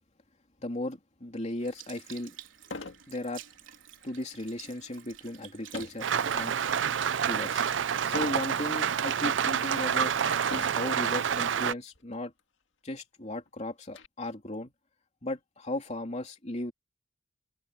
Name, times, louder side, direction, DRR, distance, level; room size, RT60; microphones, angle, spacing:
voice 1, 0.6-2.4 2.6-2.7 3.1-3.4 4.0-6.6 7.3-7.6 8.0-10.1 10.5-12.3 12.8-14.7 15.2-16.7, left 1 dB, 35° left, 3.0 m, -36 dB
Sink (filling or washing) / Liquid, 1.6-10.2 10.8-10.9, right 9 dB, 85° right, 4.0 m, -51 dB
sound 1, 1.7-1.8 2.6-3.1 3.5-3.8 5.7-6.1 6.7-7.1 8.1-8.5 9.2-9.3 10.4-10.9 11.9-12.1 12.4-12.5 12.9-14.1, left 3 dB, 75° left, 1.9 m, -41 dB
Rain, 6.0-11.7, right 8 dB, 70° right, 0.5 m, -28 dB
open air
head